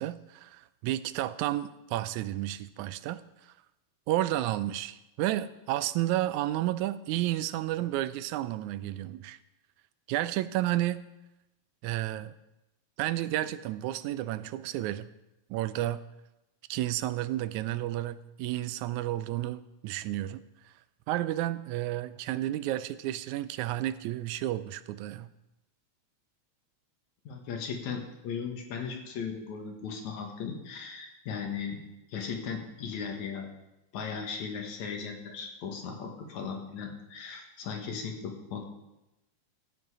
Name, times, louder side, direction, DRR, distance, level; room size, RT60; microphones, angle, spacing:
voice 1, 0.0-3.2 4.1-9.4 10.1-11.1 11.8-12.3 13.0-15.1 15.5-16.0 16.7-20.4 21.1-25.3, right 14 dB, 85° right, 14 dB, 1.9 m, -31 dB
voice 2, 27.3-31.8 32.1-33.5 33.9-38.6, left 6 dB, 75° left, 2 dB, 2.8 m, -37 dB
15.0 x 7.9 x 4.8 m, 0.95 s
omnidirectional pair, 3.3 m